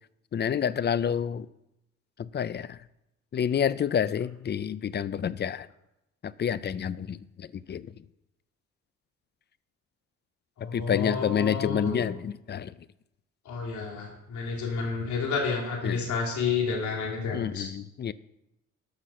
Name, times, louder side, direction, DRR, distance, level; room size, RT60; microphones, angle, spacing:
voice 1, 0.3-1.5 2.2-2.8 3.3-5.7 6.2-7.9 10.6-12.7 15.8-16.1 17.3-18.1, left 8 dB, 35° left, 17 dB, 0.5 m, -29 dB
voice 2, 10.6-12.1 13.5-17.7, left 5 dB, 75° left, -1 dB, 3.5 m, -30 dB
13.5 x 5.9 x 5.7 m, 0.88 s
cardioid pair, 90°, 30 cm